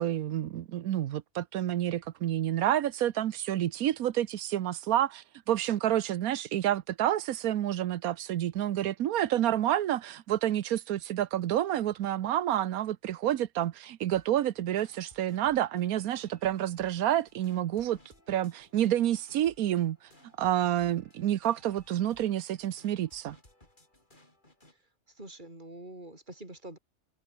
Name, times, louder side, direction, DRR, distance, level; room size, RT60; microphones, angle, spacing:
voice 1, 0.0-18.0 18.3-20.0 20.4-23.4, right 12 dB, 80° right, 1.2 m, -29 dB
sound 1, 14.1-24.8, left 1 dB, 35° left, 5.8 m, -61 dB
voice 2, 25.2-26.8, right 1 dB, 30° right, 5.8 m, -45 dB
omnidirectional pair, 1.5 m